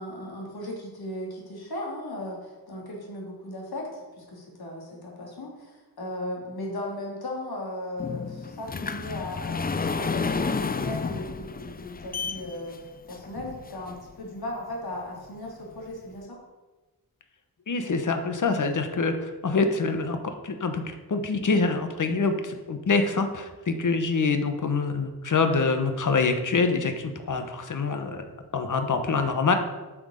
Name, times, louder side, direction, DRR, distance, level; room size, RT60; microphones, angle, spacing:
voice 1, 0.0-12.8 13.1-16.4, left 1 dB, 70° left, -2 dB, 3.0 m, -37 dB
sound 1, 8.0-14.1 14.7-14.8 15.3-15.4 15.7-15.8, left 4 dB, 25° left, 0.4 m, -31 dB
voice 2, 17.7-20.2 20.4-28.3 28.5-29.5, left 4 dB, 50° left, 7 dB, 1.1 m, -25 dB
8.7 x 6.3 x 6.5 m, 1.2 s
wide cardioid pair, 160°, 39 cm